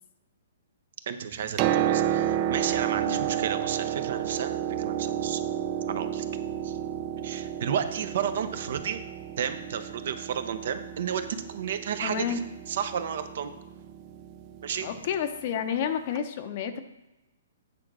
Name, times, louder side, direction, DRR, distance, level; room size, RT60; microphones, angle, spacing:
voice 1, 1.1-5.4 5.9-6.2 6.6-6.8 7.2-9.0 9.4-12.4 12.7-13.5 14.6-14.9, right 8 dB, 60° right, 9 dB, 0.7 m, -32 dB
Piano, 1.3-15.1 16.2-16.3, right 10 dB, 30° right, 0.3 m, -31 dB
voice 2, 3.1-3.4 12.0-12.4 14.8-16.8, left 8 dB, 45° left, 8 dB, 0.7 m, -30 dB
8.6 x 3.7 x 6.0 m, 1.0 s
hypercardioid pair, 150°, 0 cm